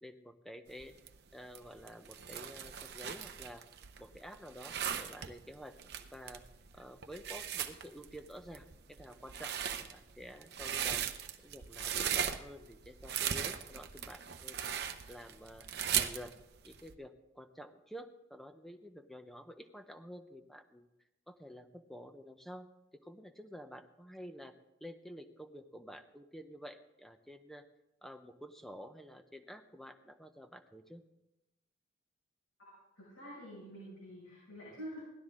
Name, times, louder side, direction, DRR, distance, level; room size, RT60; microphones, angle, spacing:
voice 1, 0.0-0.9 1.3-3.7 4.0-5.8 6.1-6.4 6.7-11.0 11.4-16.3 16.6-20.9 21.3-24.5 24.8-27.7 28.0-31.0, equal, ahead, 8 dB, 0.7 m, -50 dB
sound 1, 0.7-16.9, right 9 dB, 55° right, 0.7 m, -38 dB
voice 2, 32.6-35.0, equal, 80° left, -7 dB, 6.0 m, -48 dB
17.5 x 12.0 x 3.7 m, 0.95 s
head